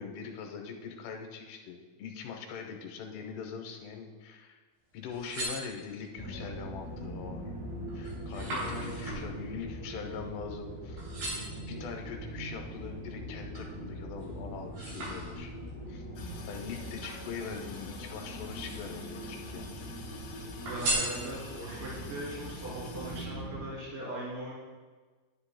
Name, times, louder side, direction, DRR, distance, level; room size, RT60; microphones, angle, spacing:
voice 1, 0.0-4.6 4.9-7.6 7.9-11.1 11.4-15.5 15.9-16.1 16.5-19.7, left 6 dB, 85° left, 3 dB, 2.9 m, -42 dB
sound 1, 5.0-6.2 6.8-7.2 7.6-10.7 11.0-11.7 12.3-13.8 14.2-15.7 16.6-17.8 18.3-19.1 19.4-20.2 20.7-21.7 22.2-22.3, right 1 dB, 75° right, 5.1 m, -38 dB
sound 2, 6.2-23.7, equal, 20° right, 2.5 m, -42 dB
voice 2, 8.5-9.0 20.5-24.5, right 1 dB, 55° right, -6 dB, 4.6 m, -40 dB
Toilet flush, 16.2-23.3, left 5 dB, 65° left, 2.9 m, -50 dB
11.5 x 10.0 x 2.2 m, 1.4 s
omnidirectional pair, 4.7 m